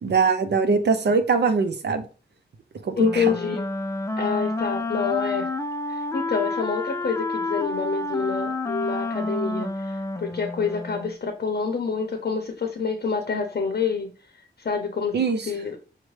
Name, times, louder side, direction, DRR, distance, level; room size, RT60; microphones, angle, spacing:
voice 1, 0.0-2.0 2.8-3.3 15.1-15.5, right 4 dB, 70° right, 8 dB, 0.6 m, -22 dB
voice 2, 3.0-3.7 4.2-5.5 5.9-14.1 14.6-15.2 15.5-15.8, left 5 dB, 60° left, 5 dB, 0.7 m, -27 dB
Wind instrument woodwind instrument, 3.0-11.2, left 2 dB, 15° left, 0.3 m, -29 dB
6.1 x 2.2 x 3.2 m, 0.37 s
wide cardioid pair, 100°, 18 cm